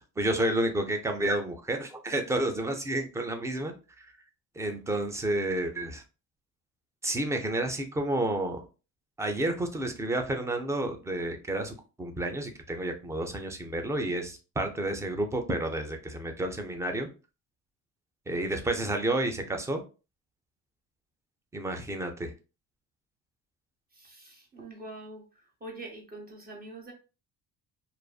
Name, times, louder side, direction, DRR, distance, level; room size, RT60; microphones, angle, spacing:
voice 1, 0.0-4.1 4.6-6.0 7.0-8.6 9.2-17.1 18.3-19.8 21.5-22.3, right 1 dB, 10° right, 0.3 m, -30 dB
voice 2, 23.9-25.2 25.6-26.9, right 2 dB, 25° right, 0.8 m, -44 dB
2.5 x 2.4 x 2.2 m
cardioid pair, 120°, 37 cm